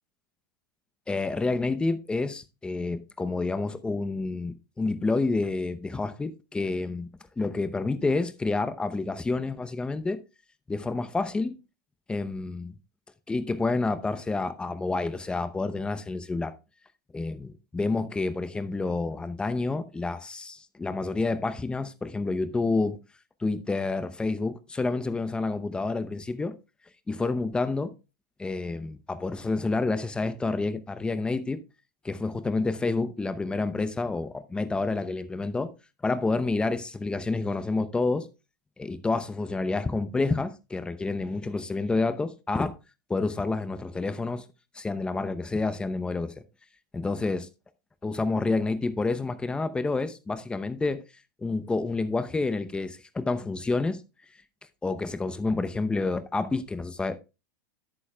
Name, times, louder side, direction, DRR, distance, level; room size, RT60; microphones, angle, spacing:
voice 1, 1.1-7.1 7.4-10.2 10.7-11.5 12.1-12.8 13.3-16.6 17.1-23.0 23.4-26.5 27.1-27.9 28.4-31.6 32.0-35.7 36.0-38.3 38.8-42.8 43.1-44.4 44.7-46.3 46.9-47.5 48.0-51.0 51.4-54.0 54.8-57.2, left 3 dB, 10° left, 0.7 m, -29 dB
11.0 x 8.7 x 2.3 m
supercardioid pair, 130°, 10 cm